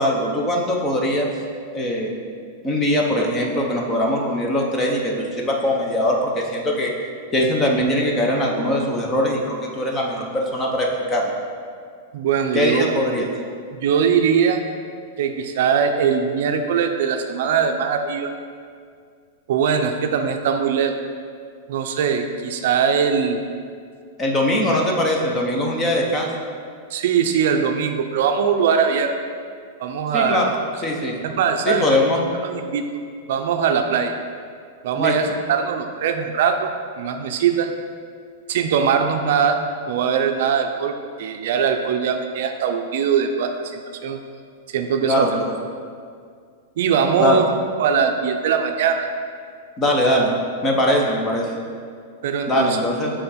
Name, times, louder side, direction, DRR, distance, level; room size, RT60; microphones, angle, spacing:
voice 1, 0.0-1.3 1.7-2.2 2.6-6.9 7.3-11.3 12.5-13.3 24.2-26.3 30.1-30.5 30.8-31.2 31.7-32.2 35.0-35.1 45.1-45.6 47.2-47.4 49.8-50.3 50.6-51.5 52.5-53.1, left 1 dB, 15° left, 0 dB, 0.7 m, -21 dB
voice 2, 12.1-12.8 13.7-14.6 15.2-18.3 19.5-21.0 21.7-23.4 26.9-29.1 29.8-30.4 31.2-31.8 32.4-32.8 33.3-34.1 34.8-36.7 37.0-37.7 38.5-39.6 39.9-40.9 41.2-44.2 44.7-45.3 46.8-47.5 47.8-49.1 52.2-52.8, right 7 dB, 60° right, 5 dB, 0.4 m, -21 dB
6.7 x 3.7 x 4.2 m, 2.1 s
supercardioid pair, 165°, 0 cm